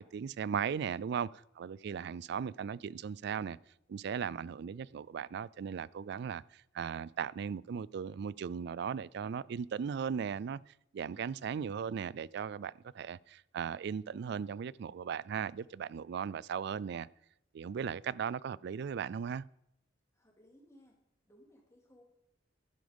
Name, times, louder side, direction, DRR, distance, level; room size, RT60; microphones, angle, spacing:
voice 1, 0.0-3.6 3.9-17.1 17.5-19.4, right 7 dB, 60° right, 0.3 m, -37 dB
voice 2, 11.1-11.5 20.1-21.0 21.3-22.0, equal, 15° left, 3.0 m, -62 dB
11.5 x 10.0 x 5.2 m
head